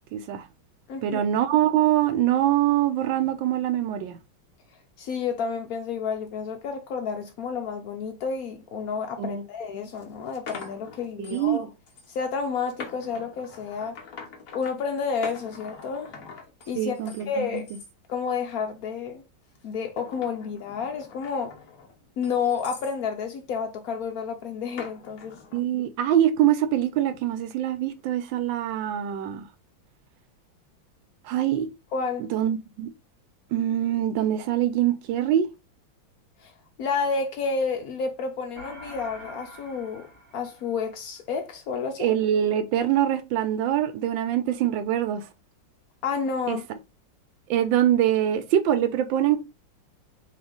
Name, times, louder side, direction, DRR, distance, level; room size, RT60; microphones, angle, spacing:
voice 1, 0.1-0.5 1.0-4.2 9.2-9.4 11.3-11.7 16.8-17.6 25.5-29.5 31.2-31.7 32.3-32.9 33.5-35.5 42.0-45.2 46.5-46.6 47.5-49.4, right 11 dB, 75° right, 1.2 m, -24 dB
voice 2, 0.9-1.2 5.0-11.7 12.1-14.0 14.5-16.2 16.7-17.7 18.1-19.2 19.6-21.6 22.2-25.4 31.9-32.3 36.4-36.5 36.8-40.1 40.3-42.1 46.0-46.7, left 5 dB, 80° left, 0.8 m, -30 dB
sound 1, 9.4-9.5 10.0-11.6 11.9-12.2 12.7-14.7 15.2-17.2 17.6-17.9 18.4-18.8 19.5-23.0 24.8-25.6, left 5 dB, 50° left, 1.1 m, -43 dB
sound 2, 38.6-41.2, right 1 dB, 35° right, 1.2 m, -45 dB
4.3 x 2.8 x 3.8 m
omnidirectional pair, 2.3 m